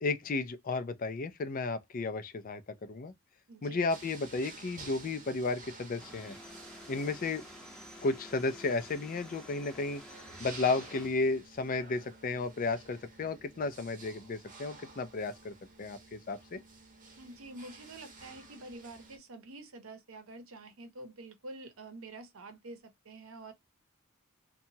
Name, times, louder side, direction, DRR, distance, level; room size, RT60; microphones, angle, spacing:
voice 1, 0.0-3.1 3.6-6.4 6.9-7.4 8.0-10.0 10.4-16.6, left 3 dB, 40° left, 0.4 m, -33 dB
voice 2, 3.5-3.8 17.2-23.5, right 2 dB, 75° right, 0.7 m, -47 dB
sound 1, 3.9-19.2, right 3 dB, 35° right, 1.0 m, -52 dB
sound 2, 6.0-11.1, left 1 dB, 5° left, 0.7 m, -51 dB
2.8 x 2.2 x 2.6 m
head